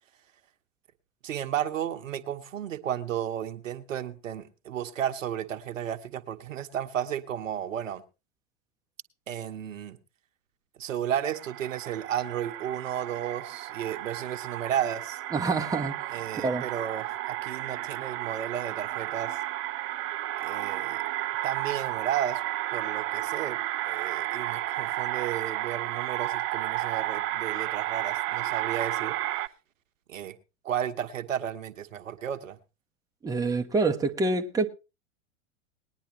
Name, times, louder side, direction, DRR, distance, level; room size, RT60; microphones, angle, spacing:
voice 1, 1.2-8.0 9.3-10.0 10.8-15.2 16.1-19.4 20.4-21.0 21.4-22.4 22.7-23.6 23.9-29.2 30.1-30.3 30.6-32.6, right 10 dB, 75° right, 1.1 m, -33 dB
sound 1, 11.3-29.5, right 15 dB, 35° right, 0.6 m, -32 dB
voice 2, 15.3-16.7 33.2-34.7, right 3 dB, 10° right, 1.0 m, -27 dB
19.5 x 10.0 x 3.0 m
hypercardioid pair, 95°, 39 cm